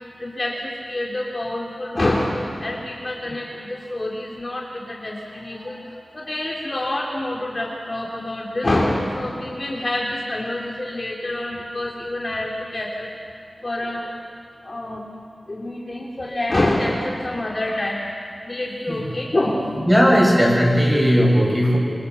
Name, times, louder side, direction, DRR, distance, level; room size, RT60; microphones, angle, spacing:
voice 1, 0.2-13.1 13.6-14.1 14.6-15.0 15.5-18.1 18.4-20.2 21.6-21.7, left 1 dB, 35° left, -2 dB, 3.1 m, -26 dB
voice 2, 19.9-21.8, equal, 5° right, -3 dB, 7.8 m, -16 dB
28.0 x 23.0 x 7.0 m, 2.3 s
wide cardioid pair, 95°, 0 cm